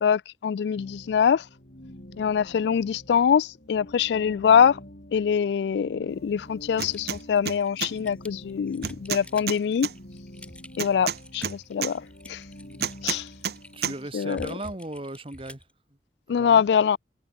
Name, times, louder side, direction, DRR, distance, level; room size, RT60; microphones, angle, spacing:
voice 1, 0.0-1.4 2.2-4.8 5.1-9.9 10.8-12.4 13.0-13.3 13.8-14.5 16.3-17.0, left 7 dB, 75° left, 0.3 m, -24 dB
sound 1, 0.8-13.9, equal, 55° left, 3.8 m, -47 dB
Typing, 6.7-15.7, left 1 dB, 5° left, 3.2 m, -48 dB
sound 2, 6.8-7.2 7.5-7.9 8.8-9.9 10.8-11.9 12.8-13.6 13.8-14.0, right 7 dB, 65° right, 1.1 m, -29 dB
voice 2, 13.7-15.6 16.3-16.6, right 1 dB, 30° right, 1.4 m, -37 dB
head